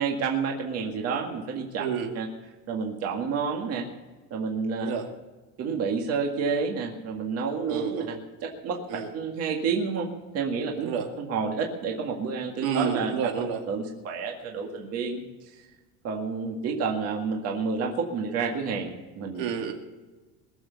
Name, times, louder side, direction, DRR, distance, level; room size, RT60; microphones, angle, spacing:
voice 1, 0.0-1.8 2.2-2.3 2.7-3.9 4.3-4.9 5.6-8.8 9.1-10.1 10.3-10.9 11.2-13.2 13.7-15.6 16.0-19.4, right 5 dB, 45° right, 1 dB, 2.0 m, -29 dB
voice 2, 1.8-2.1 4.8-5.1 7.7-8.1 8.9-9.1 10.8-11.1 12.6-13.6 19.4-19.7, right 7 dB, 70° right, 2 dB, 2.5 m, -29 dB
21.5 x 7.3 x 7.0 m, 1.2 s
cardioid pair, 170°, 35 cm